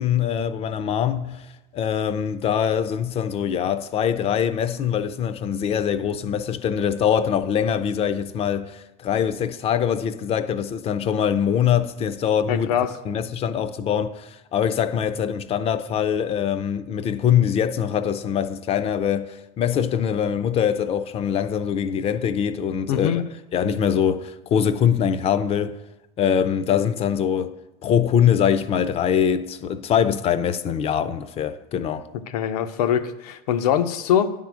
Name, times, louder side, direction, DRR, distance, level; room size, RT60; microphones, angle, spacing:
voice 1, 0.0-1.4 1.7-12.7 13.0-23.2 23.5-25.8 26.2-27.5 27.8-32.1, left 8 dB, 30° left, 0.4 m, -23 dB
voice 2, 12.5-12.9 22.9-23.2 32.3-34.3, left 9 dB, 90° left, 0.6 m, -22 dB
9.6 x 3.7 x 6.1 m
supercardioid pair, 130°, 20 cm